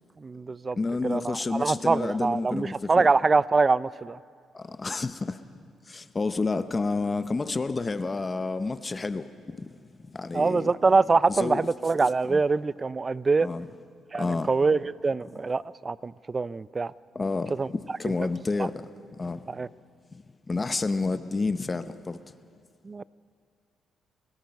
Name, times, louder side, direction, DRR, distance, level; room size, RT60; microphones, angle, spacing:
voice 1, 0.2-0.8 1.0-4.2 10.3-13.5 14.1-16.9 17.6-17.7 19.5-19.7 22.8-23.0, right 4 dB, 30° right, 0.4 m, -24 dB
voice 2, 0.8-3.1 4.5-5.4 5.9-9.3 9.6-9.7 10.1-10.7 11.3-11.7 12.2-12.4 13.4-13.7 14.2-14.5 17.1-18.7 19.2-19.4 20.5-22.2, left 3 dB, 25° left, 0.8 m, -29 dB
26.0 x 19.0 x 5.3 m
cardioid pair, 90°, 0 cm